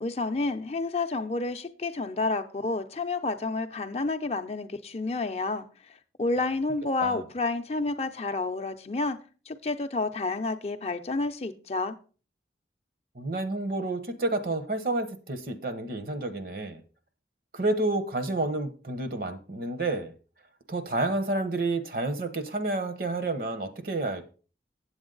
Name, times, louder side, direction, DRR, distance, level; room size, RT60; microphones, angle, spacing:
voice 1, 0.0-5.7 6.2-9.2 9.5-12.0, left 3 dB, 35° left, 0.5 m, -30 dB
voice 2, 13.2-16.8 17.5-20.1 20.7-24.3, right 2 dB, 50° right, 0.9 m, -30 dB
8.2 x 7.9 x 3.9 m
head